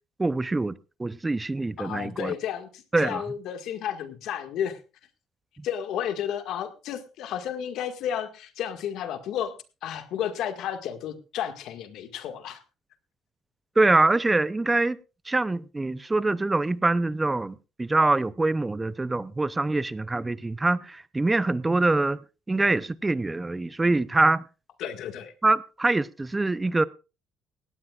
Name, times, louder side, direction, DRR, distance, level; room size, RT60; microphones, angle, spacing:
voice 1, 0.2-0.7 1.0-2.3 2.9-3.2 13.8-15.0 15.3-22.2 22.5-24.4 25.4-26.8, right 2 dB, 15° right, 0.6 m, -24 dB
voice 2, 1.8-4.8 5.6-9.5 9.8-12.6 24.8-25.3, left 9 dB, 70° left, 1.8 m, -32 dB
18.0 x 16.5 x 2.4 m
supercardioid pair, 85°, 0 cm